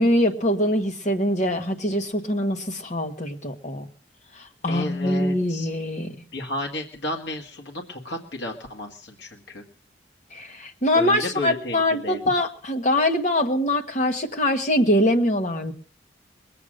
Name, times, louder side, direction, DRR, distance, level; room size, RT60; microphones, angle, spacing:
voice 1, 0.0-3.9 4.4-6.1 10.3-15.7, left 1 dB, 40° left, 4 dB, 1.5 m, -23 dB
voice 2, 4.7-5.7 6.3-9.6 10.9-12.2, left 1 dB, 65° left, 2 dB, 1.8 m, -32 dB
20.5 x 8.4 x 6.5 m, 0.44 s
head